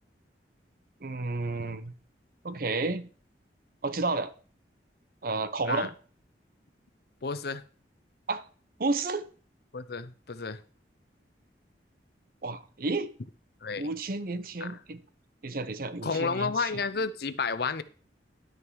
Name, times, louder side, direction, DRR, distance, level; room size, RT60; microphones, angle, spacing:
voice 1, 1.0-1.9 2.4-3.1 3.8-4.3 5.2-5.9 8.3-8.4 8.8-9.3 12.4-13.1 13.8-15.0 15.4-16.7, right 3 dB, 55° right, 0.8 m, -31 dB
voice 2, 7.2-7.6 9.7-10.6 13.6-13.9 14.6-14.7 16.0-17.8, left 4 dB, 60° left, 0.7 m, -31 dB
10.5 x 6.5 x 4.7 m
head